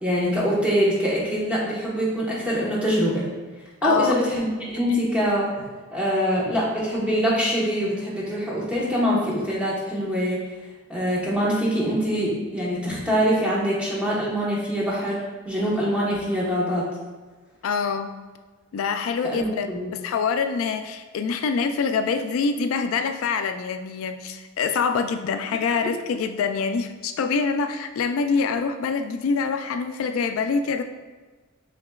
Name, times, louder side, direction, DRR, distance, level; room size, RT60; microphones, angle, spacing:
voice 1, 0.0-3.3 3.8-5.5 5.9-10.4 10.9-16.9 19.2-19.9, equal, 5° right, -6 dB, 1.1 m, -24 dB
voice 2, 3.8-4.1 17.6-18.1 18.7-19.7 20.0-30.8, left 5 dB, 85° left, 8 dB, 0.3 m, -25 dB
7.0 x 2.9 x 2.3 m, 1.3 s
head